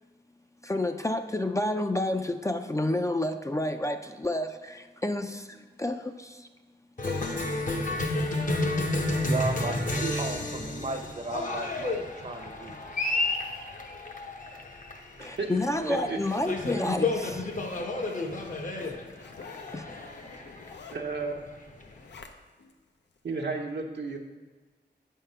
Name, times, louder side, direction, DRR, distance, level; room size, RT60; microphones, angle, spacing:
voice 1, 0.6-6.5 15.2-17.5 19.7-19.9, left 1 dB, 15° left, 6 dB, 0.4 m, -30 dB
Cheering, 7.0-22.2, left 2 dB, 45° left, 0.8 m, -31 dB
voice 2, 9.3-12.8, right 3 dB, 40° right, 5 dB, 0.7 m, -35 dB
voice 3, 9.9-10.3 15.2-15.5 15.9-16.2 20.9-21.5 23.2-24.2, right 4 dB, 75° right, 2 dB, 0.9 m, -33 dB
Zipper (clothing), 15.2-22.7 23.2-23.3, left 5 dB, 80° left, 0.6 m, -49 dB
8.0 x 3.7 x 5.6 m, 1.3 s
wide cardioid pair, 70°, 18 cm